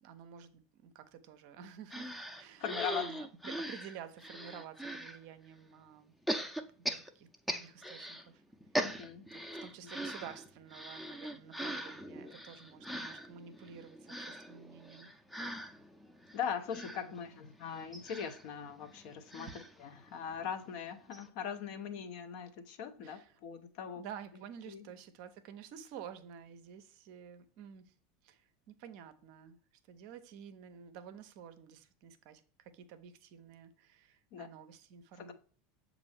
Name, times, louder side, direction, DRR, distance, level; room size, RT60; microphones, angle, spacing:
voice 1, 0.0-2.6 3.0-6.1 6.9-8.4 9.3-15.1 17.3-17.4 19.4-19.6 23.0-23.3 24.0-27.9 28.2-29.6 29.9-35.3, right 8 dB, 55° right, 0.5 m, -51 dB
sound 1, 1.9-5.2 6.3-8.3 8.5-20.5 20.8-20.9 21.1-21.3, right 1 dB, 5° left, 0.5 m, -41 dB
voice 2, 2.6-3.1 8.8-9.2 9.8-9.9 16.3-24.0 24.3-24.9 34.3-34.5 35.2-35.3, left 7 dB, 55° left, 0.5 m, -41 dB
6.7 x 2.5 x 3.2 m
figure-of-eight pair, 75°, 0 cm